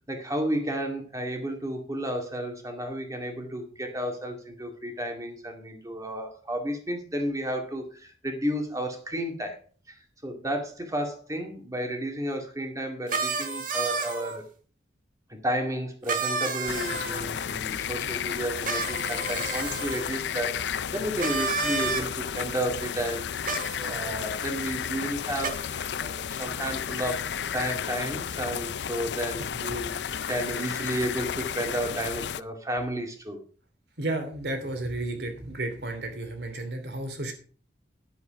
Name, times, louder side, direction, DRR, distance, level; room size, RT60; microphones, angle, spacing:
voice 1, 0.1-9.6 9.9-14.4 15.3-23.3 23.6-33.4, equal, 20° right, 3 dB, 2.2 m, -32 dB
sound 1, 13.1-14.4 16.1-17.2 18.6-20.0 21.2-22.0 23.4-24.1 25.4-25.5, right 4 dB, 50° right, 1.7 m, -30 dB
sound 2, 16.7-32.4, left 8 dB, 75° left, 0.4 m, -33 dB
voice 2, 34.0-37.3, right 2 dB, 70° right, 6 dB, 2.8 m, -32 dB
10.5 x 8.1 x 4.9 m, 0.41 s
head